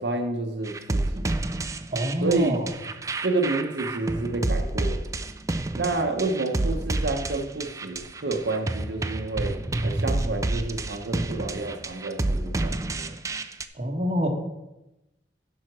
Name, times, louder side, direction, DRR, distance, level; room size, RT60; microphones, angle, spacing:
voice 1, 0.0-1.3 2.2-2.6 3.2-5.2 5.7-9.6 9.8-13.1, right 2 dB, 80° right, 4 dB, 0.9 m, -29 dB
sound 1, 0.7-13.6, right 2 dB, 20° right, 0.4 m, -29 dB
voice 2, 1.9-2.7 13.8-14.3, equal, 35° right, 2 dB, 1.2 m, -26 dB
7.6 x 5.7 x 6.0 m, 0.96 s
head